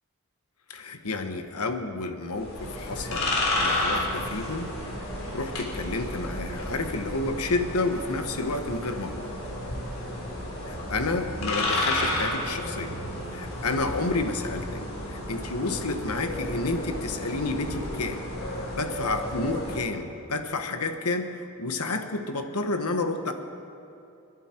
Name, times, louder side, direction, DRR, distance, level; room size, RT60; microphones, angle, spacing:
voice 1, 0.7-4.7 5.3-9.3 10.6-12.9 13.3-18.3 18.5-23.3, left 3 dB, 85° left, 6 dB, 1.2 m, -30 dB
sound 1, 2.3-19.8, left 1 dB, 65° left, 3.8 m, -32 dB
29.5 x 11.0 x 4.5 m, 2.7 s
head